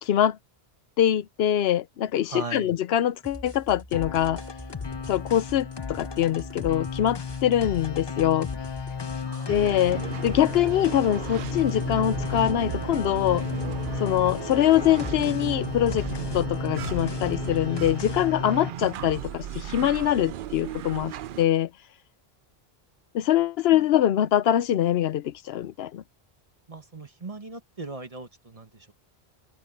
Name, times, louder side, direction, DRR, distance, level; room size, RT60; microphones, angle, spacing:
voice 1, 0.0-0.4 1.0-4.4 5.1-8.5 9.5-13.4 14.0-16.1 16.3-21.7 23.1-26.0, left 11 dB, 80° left, 0.8 m, -24 dB
voice 2, 2.2-2.7 9.2-9.9 23.7-23.9 26.7-28.9, right 3 dB, 35° right, 1.5 m, -39 dB
sound 1, 3.2-17.7, equal, 15° left, 5.9 m, -43 dB
sound 2, 3.9-18.7, left 6 dB, 35° left, 0.5 m, -34 dB
sound 3, 9.5-21.4, right 11 dB, 60° right, 0.7 m, -35 dB
omnidirectional pair, 1.0 m